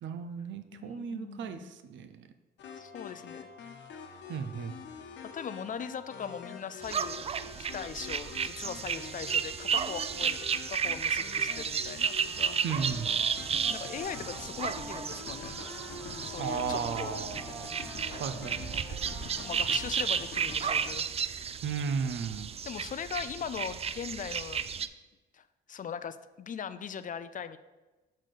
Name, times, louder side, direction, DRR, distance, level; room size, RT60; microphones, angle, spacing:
voice 1, 0.0-2.2 4.3-4.7 12.6-13.1 16.4-17.7 18.1-18.6 21.6-22.5, right 6 dB, 70° right, 10 dB, 0.7 m, -35 dB
voice 2, 0.7-1.7 2.8-3.5 5.3-12.6 13.7-15.6 16.2-17.2 19.4-21.1 22.6-24.9 25.3-27.6, left 7 dB, 40° left, 13 dB, 0.4 m, -40 dB
sound 1, 2.6-20.9, left 5 dB, 70° left, 1.1 m, -46 dB
sound 2, 6.8-24.9, right 7 dB, 30° right, 0.3 m, -33 dB
Wind instrument woodwind instrument, 12.2-19.7, equal, ahead, 2.3 m, -48 dB
6.3 x 4.1 x 6.5 m, 1.1 s
cardioid pair, 90°, 20 cm